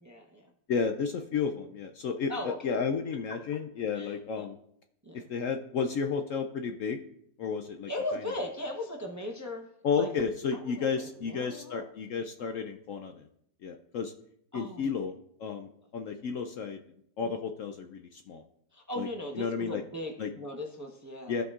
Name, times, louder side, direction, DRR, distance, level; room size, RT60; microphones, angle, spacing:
voice 1, 0.0-0.5 2.3-2.8 3.3-3.4 3.9-4.4 5.0-5.3 7.9-9.7 9.9-10.1 10.5-11.8 12.4-12.5 14.5-14.9 17.2-17.3 18.7-21.4, left 1 dB, 15° right, 1 dB, 0.6 m, -38 dB
voice 2, 0.7-4.6 5.1-7.0 7.4-7.9 9.8-13.2 13.6-14.1 14.5-15.1 15.4-16.8 17.2-18.4 19.0-19.1 19.4-19.8 20.2-20.3 21.3-21.4, left 6 dB, 70° left, 5 dB, 0.8 m, -32 dB
15.5 x 5.2 x 2.4 m, 0.74 s
omnidirectional pair, 1.7 m